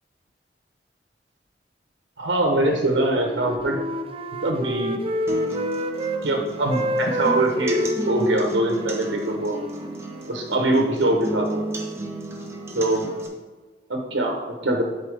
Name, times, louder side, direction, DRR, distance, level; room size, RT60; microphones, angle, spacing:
voice 1, 2.2-3.8 4.4-5.0 6.2-9.6 10.3-11.6 12.7-13.1 13.9-14.8, right 1 dB, 85° right, 2 dB, 1.0 m, -23 dB
Wind instrument woodwind instrument, 2.8-6.2 6.5-10.5, right 1 dB, 30° right, 0.4 m, -29 dB
sound 1, 5.3-13.3, right 1 dB, 15° right, 0.9 m, -33 dB
11.0 x 4.2 x 3.4 m, 1.4 s
head